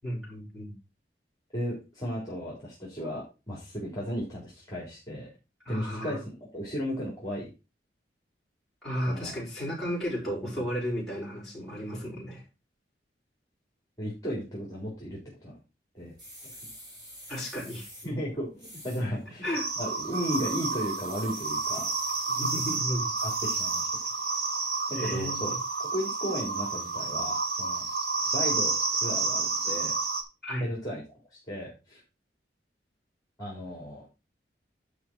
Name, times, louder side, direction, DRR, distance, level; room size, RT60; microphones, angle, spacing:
voice 1, 0.0-0.7 5.7-6.2 8.8-12.4 17.3-17.9 19.4-19.6 22.3-23.1 25.0-25.6 30.4-30.7, equal, ahead, -7 dB, 5.3 m, -33 dB
voice 2, 1.5-5.3 5.7-7.5 9.1-9.4 14.0-15.5 15.9-16.1 16.4-16.5 18.0-19.5 19.8-21.9 23.2-23.9 24.9-25.5 25.8-27.9 28.3-30.0 30.6-32.0 33.4-34.1, equal, 20° left, -5 dB, 3.7 m, -35 dB
sound 1, 16.0-24.1, equal, 25° right, 3.5 m, -48 dB
sound 2, 19.5-30.2, right 4 dB, 55° right, 1.5 m, -30 dB
11.0 x 5.3 x 4.4 m, 0.28 s
head